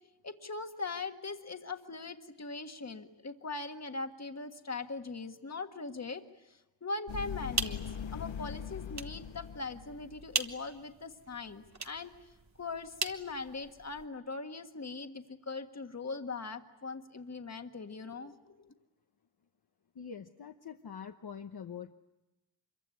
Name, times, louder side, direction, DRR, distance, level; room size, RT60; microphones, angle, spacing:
voice 1, 0.2-6.2 6.5-7.8 8.1-12.1 12.6-18.7, left 3 dB, 35° left, 6 dB, 1.6 m, -41 dB
sound 1, 7.1-10.5, left 8 dB, 75° left, 1.0 m, -41 dB
sound 2, 7.2-14.1, right 4 dB, 35° right, 1.3 m, -41 dB
voice 2, 19.9-21.9, left 7 dB, 55° left, 5 dB, 1.0 m, -44 dB
26.5 x 23.0 x 9.7 m, 1.0 s
wide cardioid pair, 160°, 46 cm